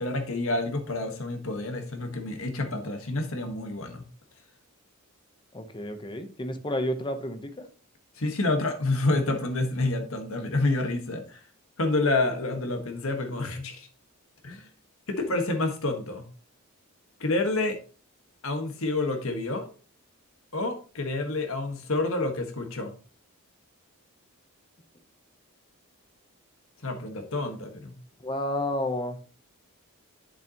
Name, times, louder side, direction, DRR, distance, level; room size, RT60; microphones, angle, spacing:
voice 1, 0.0-4.0 8.2-11.4 11.8-13.9 14.4-14.7 15.1-16.2 17.2-17.8 18.4-19.7 20.5-22.9 26.8-28.0, left 2 dB, 65° left, 5 dB, 1.5 m, -28 dB
voice 2, 5.5-7.7 28.2-29.2, left 1 dB, 20° left, 7 dB, 0.9 m, -31 dB
9.1 x 7.0 x 3.0 m, 0.37 s
head